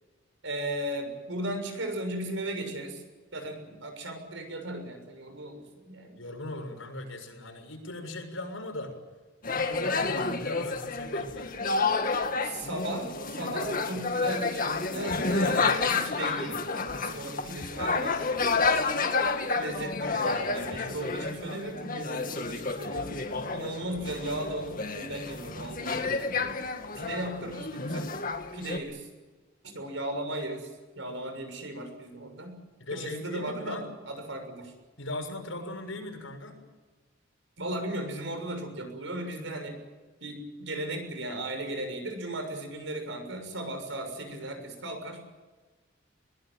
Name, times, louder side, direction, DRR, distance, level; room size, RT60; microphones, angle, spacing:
voice 1, 0.4-3.0 3.3-6.2 10.0-10.4 12.4-19.2 19.5-23.1 23.5-26.4 27.0-28.2 28.5-29.1 29.6-30.7 30.9-32.6 32.9-34.7 37.6-39.8 40.2-45.2, right 1 dB, 70° right, 6 dB, 6.7 m, -36 dB
voice 2, 6.2-8.9 9.5-11.5 32.8-33.9 35.0-36.6, left 2 dB, 85° left, 4 dB, 6.6 m, -38 dB
sound 1, 9.4-28.8, left 4 dB, 45° left, 2.1 m, -30 dB
22.0 x 20.5 x 9.2 m, 1.3 s
head